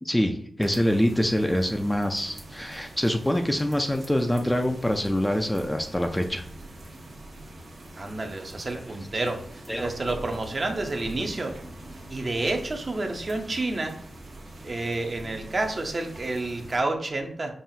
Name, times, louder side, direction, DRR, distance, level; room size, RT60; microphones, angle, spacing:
voice 1, 0.0-6.5 9.2-9.3 9.7-9.9, equal, 10° left, 4 dB, 0.3 m, -25 dB
sound 1, 0.6-16.8, right 1 dB, 70° right, 1.0 m, -44 dB
voice 2, 8.0-11.6 12.1-14.0 14.6-17.5, right 2 dB, 40° right, 4 dB, 0.6 m, -29 dB
5.4 x 2.4 x 2.7 m, 0.62 s
wide cardioid pair, 105°, 0 cm